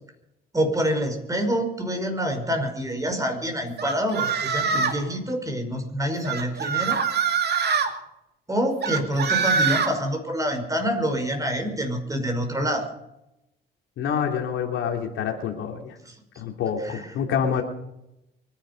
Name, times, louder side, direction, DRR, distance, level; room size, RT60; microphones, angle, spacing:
voice 1, 0.5-7.0 8.5-12.9 16.0-16.1 16.8-17.1, equal, 15° right, 5 dB, 5.1 m, -26 dB
sound 1, 3.8-5.0 6.2-7.9 8.8-9.9, right 6 dB, 55° right, 2.5 m, -24 dB
voice 2, 14.0-15.9 16.4-17.6, left 7 dB, 80° left, 3 dB, 3.1 m, -27 dB
24.0 x 10.5 x 5.3 m, 0.85 s
cardioid pair, 90°, 20 cm